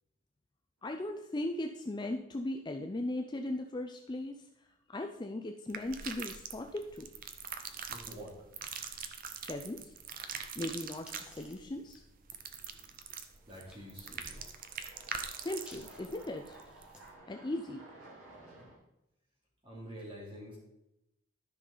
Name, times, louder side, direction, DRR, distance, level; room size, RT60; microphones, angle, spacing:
voice 1, 0.8-4.5 4.9-7.1 9.4-9.9 10.6-12.0 15.4-16.6 17.3-17.9, left 1 dB, 20° left, 4 dB, 0.4 m, -38 dB
sound 1, 0.8-1.4 1.8-1.9 4.8-4.9 6.2-6.5 6.8-6.9 12.2-12.3 13.1-18.8, right 2 dB, 80° right, 3.9 m, -56 dB
sound 2, 5.7-17.1, right 7 dB, 40° right, 0.6 m, -43 dB
voice 2, 7.9-8.3 13.5-14.4 19.6-20.6, equal, 25° right, -5 dB, 2.8 m, -47 dB
sound 3, 10.8-13.0 13.5-13.8 14.4-15.0 15.5-17.0, left 1 dB, 5° right, 1.3 m, -58 dB
12.5 x 5.6 x 3.9 m, 0.88 s
head